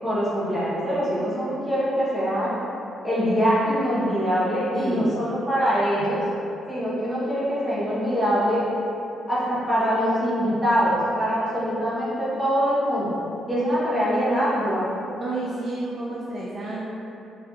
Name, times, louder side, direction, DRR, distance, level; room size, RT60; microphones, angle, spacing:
voice 1, 0.0-2.5 3.0-6.2 6.7-8.6 9.3-13.1 13.5-14.9, equal, 5° right, -10 dB, 0.8 m, -23 dB
voice 2, 4.7-5.2 15.2-16.9, right 2 dB, 45° right, -7 dB, 0.3 m, -30 dB
2.4 x 2.2 x 2.4 m, 2.8 s
cardioid pair, 90°, 0 cm